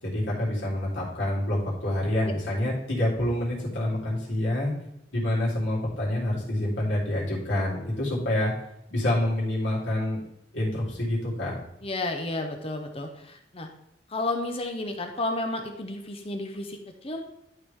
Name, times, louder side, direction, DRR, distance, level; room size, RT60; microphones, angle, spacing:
voice 1, 0.0-4.7 5.1-8.5 8.9-10.2 10.5-11.6, left 1 dB, 85° left, -6 dB, 3.3 m, -27 dB
voice 2, 11.8-13.7 14.1-17.2, left 2 dB, 30° left, 4 dB, 0.8 m, -32 dB
12.0 x 4.7 x 3.6 m, 0.80 s
head